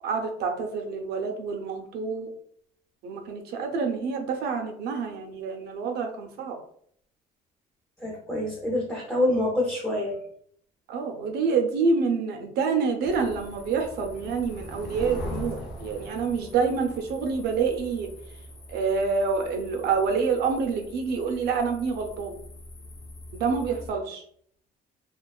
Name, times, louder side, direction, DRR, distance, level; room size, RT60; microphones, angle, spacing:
voice 1, 0.0-2.3 3.0-6.6 10.9-18.1 18.7-22.4 23.3-24.2, right 5 dB, 75° right, 4 dB, 0.5 m, -27 dB
voice 2, 8.0-10.2, left 1 dB, 5° left, -4 dB, 0.6 m, -26 dB
sound 1, 13.0-23.9, left 1 dB, 90° left, 0.7 m, -42 dB
2.4 x 2.2 x 2.3 m, 0.63 s
cardioid pair, 110°, 17 cm